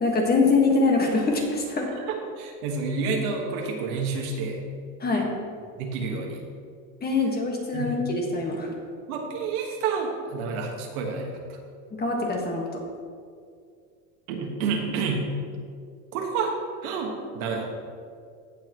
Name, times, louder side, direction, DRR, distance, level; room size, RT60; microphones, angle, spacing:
voice 1, 0.0-1.9 5.0-5.2 7.0-8.7 12.0-12.6, left 3 dB, 20° left, 0 dB, 1.6 m, -23 dB
voice 2, 2.0-4.6 5.8-6.4 7.7-7.9 9.1-11.6 14.3-15.3 16.1-16.5 16.8-17.7, right 4 dB, 85° right, 2 dB, 1.6 m, -29 dB
16.5 x 5.8 x 3.0 m, 2.2 s
supercardioid pair, 130°, 42 cm